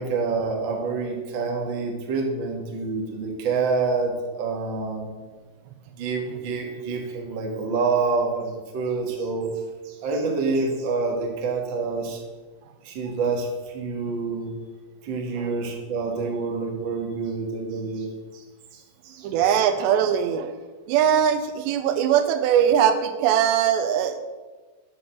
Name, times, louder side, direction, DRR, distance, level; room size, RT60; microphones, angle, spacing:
voice 1, 0.0-5.1 5.9-9.5 9.8-12.2 12.8-14.5 15.0-18.1 18.3-18.4 18.7-19.3, right 4 dB, 65° right, 1 dB, 1.1 m, -27 dB
voice 2, 19.2-20.5 20.9-24.2, right 9 dB, 85° right, 9 dB, 2.9 m, -21 dB
9.6 x 6.1 x 7.7 m, 1.3 s
omnidirectional pair, 5.0 m